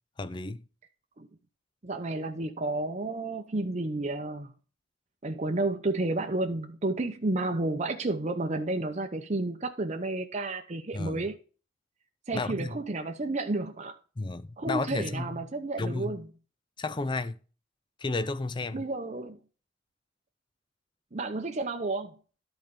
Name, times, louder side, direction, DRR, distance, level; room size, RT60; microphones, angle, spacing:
voice 1, 0.2-0.6 10.9-11.3 12.3-12.8 14.2-15.4 15.8-16.2 16.8-17.4 18.0-18.8, left 2 dB, 25° left, 0.5 m, -32 dB
voice 2, 1.8-4.5 5.2-11.3 12.3-13.9 14.6-16.3 18.7-19.4 21.1-22.2, right 2 dB, 35° right, 0.7 m, -31 dB
11.0 x 4.5 x 5.2 m
head